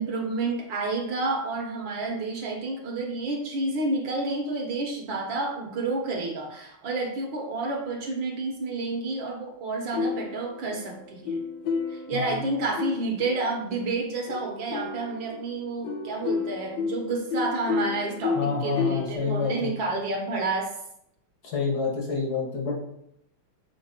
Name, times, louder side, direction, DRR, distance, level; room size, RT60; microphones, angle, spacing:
voice 1, 0.0-11.4 11.9-20.7, right 3 dB, 65° right, 1 dB, 1.7 m, -30 dB
sound 1, 9.9-13.8 14.3-19.1, left 5 dB, 70° left, 1.5 m, -32 dB
voice 2, 12.1-12.4 18.4-19.7 21.4-22.8, left 5 dB, 50° left, -2 dB, 1.9 m, -28 dB
7.7 x 4.4 x 2.9 m, 0.75 s
omnidirectional pair, 2.3 m